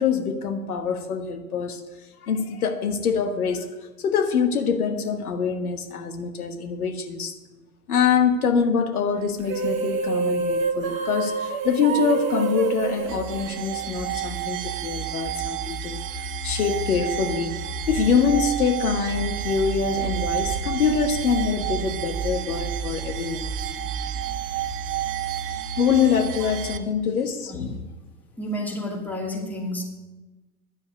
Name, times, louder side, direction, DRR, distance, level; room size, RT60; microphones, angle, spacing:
voice 1, 0.0-1.8 2.2-3.7 4.0-7.4 7.9-17.6 17.9-23.5 25.8-27.9, left 6 dB, 65° left, 7 dB, 1.4 m, -24 dB
sound 1, 9.4-14.1, right 5 dB, 55° right, 1.6 m, -27 dB
sound 2, 13.1-26.8, right 8 dB, 25° right, 0.7 m, -30 dB
voice 2, 28.4-29.8, left 1 dB, 5° left, 0 dB, 2.3 m, -31 dB
10.5 x 7.5 x 9.4 m, 1.1 s
figure-of-eight pair, 95°, 48 cm